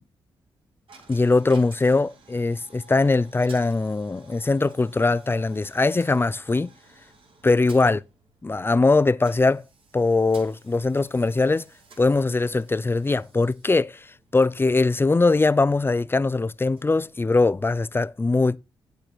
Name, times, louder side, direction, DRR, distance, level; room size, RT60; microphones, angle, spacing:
Coin (dropping), 0.9-17.8, right 4 dB, 65° right, 4.2 m, -54 dB
voice 1, 1.1-6.7 7.4-8.0 8.4-9.6 9.9-11.6 12.0-14.1 14.3-18.6, left 3 dB, 20° left, 0.6 m, -21 dB
9.1 x 7.6 x 4.5 m
cardioid pair, 60°, 10 cm